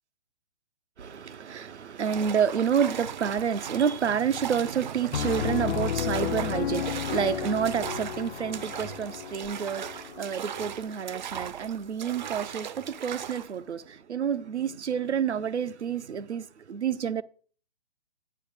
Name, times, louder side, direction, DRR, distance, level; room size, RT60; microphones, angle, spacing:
voice 1, 1.0-17.2, right 7 dB, 85° right, 0.6 m, -29 dB
sound 1, 2.0-13.5, right 9 dB, 45° right, 0.5 m, -39 dB
Piano, 5.1-10.7, left 10 dB, 65° left, 0.5 m, -33 dB
8.6 x 4.8 x 5.0 m
figure-of-eight pair, 140°, 34 cm